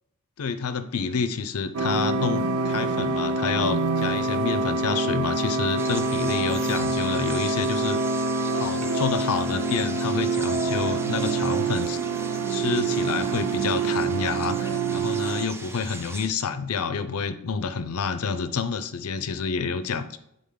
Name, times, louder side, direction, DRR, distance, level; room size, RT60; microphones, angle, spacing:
voice 1, 0.4-8.0 8.5-12.0 12.5-20.2, left 5 dB, 85° left, 10 dB, 0.5 m, -28 dB
sound 1, 1.7-15.5, right 3 dB, 85° right, 0.5 m, -26 dB
sound 2, 5.8-16.3, right 2 dB, 10° right, 0.4 m, -40 dB
9.3 x 3.9 x 3.7 m, 0.79 s
head